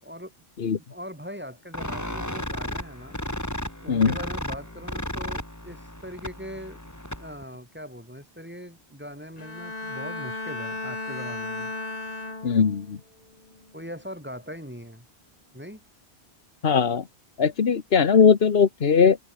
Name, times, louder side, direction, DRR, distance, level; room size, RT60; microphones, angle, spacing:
voice 1, 0.9-3.2 3.8-6.8 7.2-11.7 13.7-15.1 15.5-15.8, equal, 10° right, 4.8 m, -40 dB
sound 1, 1.7-7.4, left 1 dB, 15° left, 3.1 m, -34 dB
Bowed string instrument, 9.4-12.9 13.4-13.8, left 2 dB, 35° left, 2.4 m, -35 dB
voice 2, 12.4-13.0 16.6-17.0 17.4-19.2, left 6 dB, 65° left, 1.4 m, -19 dB
open air
omnidirectional pair, 1.1 m